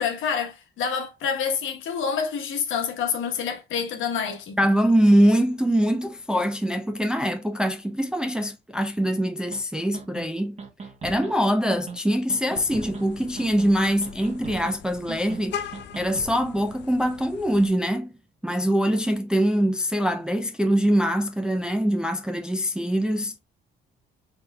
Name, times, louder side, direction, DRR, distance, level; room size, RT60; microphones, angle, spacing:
voice 1, 0.0-4.6, left 6 dB, 80° left, 1.2 m, -27 dB
voice 2, 4.6-10.6 11.0-15.6 16.0-18.1 18.4-23.4, equal, 5° right, 0.4 m, -23 dB
sound 1, 9.5-9.6 9.9-10.3 10.6-11.3 11.7-12.0 12.3-13.1 13.4-13.8 14.0-14.8 15.1-15.4 15.7-16.4, right 4 dB, 35° right, 1.1 m, -38 dB
Vehicle horn car horn honking, 12.5-17.7, left 8 dB, 60° left, 0.5 m, -40 dB
4.1 x 3.7 x 2.3 m
cardioid pair, 90°, 20 cm